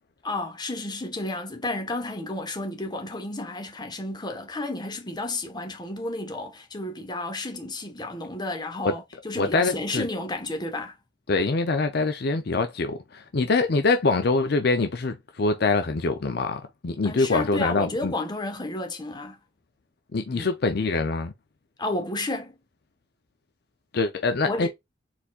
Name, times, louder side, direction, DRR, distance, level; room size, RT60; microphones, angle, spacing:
voice 1, 0.2-11.0 17.0-19.4 20.3-20.5 21.8-22.6 24.5-24.7, left 2 dB, 25° left, 1.2 m, -32 dB
voice 2, 9.3-10.0 11.3-18.1 20.1-21.3 23.9-24.7, left 3 dB, 60° left, 0.6 m, -24 dB
4.3 x 4.2 x 2.4 m
head